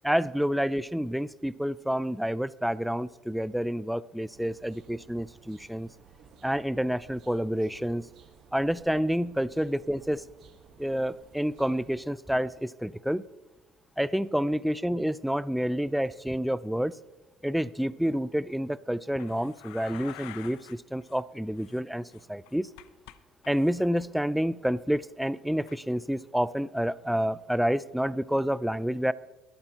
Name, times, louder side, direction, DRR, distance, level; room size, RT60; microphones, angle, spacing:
voice 1, 0.0-5.9 6.4-8.0 8.5-10.3 10.8-13.2 14.0-17.0 17.4-22.0 22.3-22.7 23.5-29.1, equal, ahead, 18 dB, 0.3 m, -28 dB
sound 1, 4.3-12.1, right 6 dB, 50° right, 1.3 m, -56 dB
sound 2, 19.2-20.8 21.0-21.2 21.6-23.2 23.4-23.8 25.7-25.8, left 14 dB, 90° left, 0.6 m, -48 dB
23.0 x 8.8 x 2.9 m, 1.0 s
cardioid pair, 135°, 0 cm